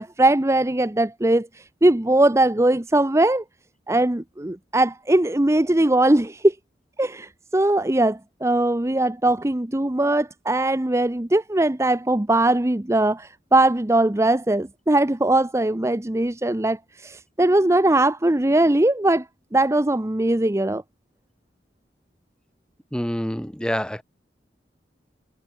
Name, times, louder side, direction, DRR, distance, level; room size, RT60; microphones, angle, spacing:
voice 1, 0.0-3.4 3.9-6.6 7.0-19.3 19.5-20.8, right 1 dB, 15° right, 0.7 m, -20 dB
voice 2, 22.9-24.0, equal, 5° left, 1.7 m, -27 dB
head